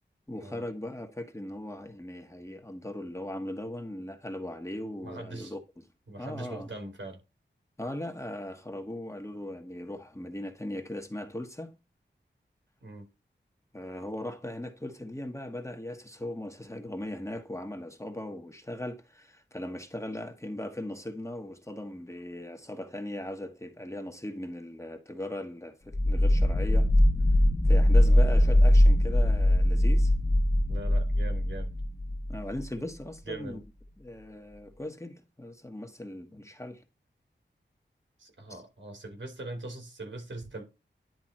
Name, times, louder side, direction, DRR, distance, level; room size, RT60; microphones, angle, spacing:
voice 1, 0.3-5.6 6.2-6.7 7.8-11.8 13.7-26.9 27.6-30.1 32.3-33.7 34.0-36.8 38.5-38.6, left 1 dB, 15° left, 1.3 m, -38 dB
voice 2, 5.0-5.5 6.1-7.2 12.8-13.1 28.0-28.2 30.7-31.7 33.3-33.6 38.2-40.6, right 2 dB, 80° right, 3.4 m, -41 dB
sound 1, 25.9-32.7, left 1 dB, 35° left, 1.4 m, -22 dB
10.5 x 3.6 x 4.3 m
wide cardioid pair, 95°, 19 cm